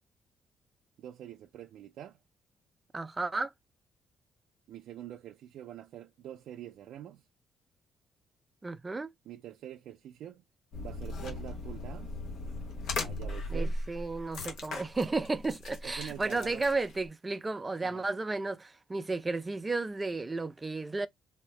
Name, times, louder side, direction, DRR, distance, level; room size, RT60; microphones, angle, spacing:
voice 1, 1.0-2.2 4.7-7.2 9.3-10.4 10.8-12.2 13.0-13.8 15.8-16.6 17.8-18.1, right 11 dB, 80° right, 0.4 m, -45 dB
voice 2, 2.9-3.5 8.6-9.1 13.5-21.1, right 3 dB, 20° right, 0.5 m, -33 dB
sound 1, 10.7-17.0, left 2 dB, 80° left, 1.1 m, -38 dB
3.5 x 2.7 x 3.2 m
cardioid pair, 90°, 0 cm